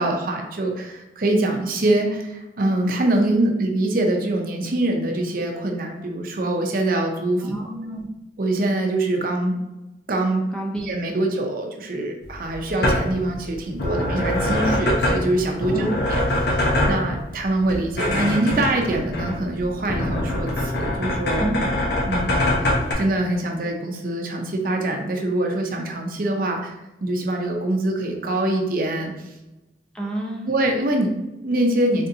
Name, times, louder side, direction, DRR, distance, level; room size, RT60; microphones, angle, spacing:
voice 1, 0.0-7.5 8.4-9.6 10.1-10.4 10.7-21.5 22.1-26.8 27.0-29.3 30.4-32.1, right 1 dB, 50° right, 2 dB, 0.6 m, -24 dB
voice 2, 7.4-8.1 10.5-10.9 15.7-16.0 21.4-21.8 29.9-30.5, right 1 dB, 5° left, -2 dB, 0.5 m, -29 dB
sound 1, 12.2-22.9, left 1 dB, 70° left, 0.9 m, -24 dB
3.9 x 3.4 x 2.7 m, 0.99 s
head